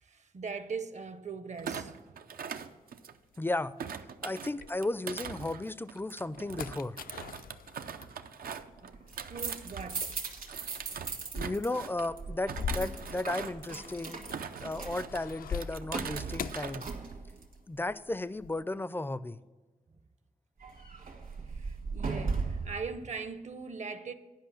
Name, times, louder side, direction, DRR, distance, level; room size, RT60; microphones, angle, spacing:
voice 1, 0.0-2.0 8.5-8.9 9.3-10.1 21.5-24.1, right 5 dB, 50° right, 0.7 m, -40 dB
Thump thud, 1.6-3.4 3.8-10.1 10.5-12.1 12.5-13.7 14.1-15.2 15.6-16.8 17.1-17.5, right 7 dB, 90° right, 0.5 m, -42 dB
sound 1, 2.6-5.3 5.8-17.6 17.8-18.6, left 7 dB, 80° left, 0.4 m, -44 dB
voice 2, 3.4-3.7 4.2-7.0 11.3-14.2 14.6-16.8 17.7-19.4, left 2 dB, 15° left, 0.4 m, -34 dB
sound 2, 8.9-11.7 11.9-17.5 20.6-22.8, right 4 dB, 65° right, 1.7 m, -38 dB
10.5 x 5.4 x 7.1 m
wide cardioid pair, 80°, 15 cm